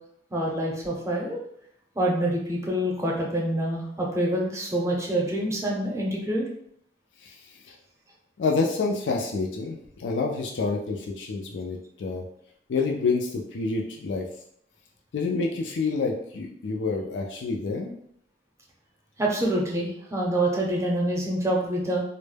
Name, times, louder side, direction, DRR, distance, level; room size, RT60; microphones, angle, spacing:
voice 1, 0.3-1.4 2.0-6.4 19.2-22.0, right 1 dB, 15° right, -2 dB, 0.6 m, -26 dB
voice 2, 8.4-12.2 12.7-14.3 15.1-18.0, left 4 dB, 85° left, 0 dB, 0.4 m, -28 dB
2.1 x 2.0 x 3.2 m, 0.69 s
head